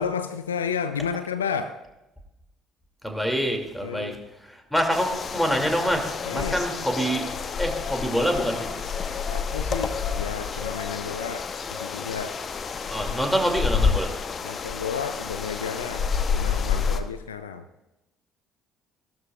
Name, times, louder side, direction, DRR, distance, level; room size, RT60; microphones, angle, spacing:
voice 1, 0.0-1.8 3.8-4.1 6.3-6.6 9.3-12.4 14.4-17.7, left 6 dB, 80° left, 10 dB, 0.4 m, -32 dB
voice 2, 3.0-7.3 7.6-8.7 12.9-14.2, equal, 5° left, 3 dB, 2.5 m, -26 dB
sound 1, 4.9-17.0, left 6 dB, 40° left, 0.9 m, -29 dB
17.0 x 12.5 x 2.4 m, 0.98 s
figure-of-eight pair, 50°, 0 cm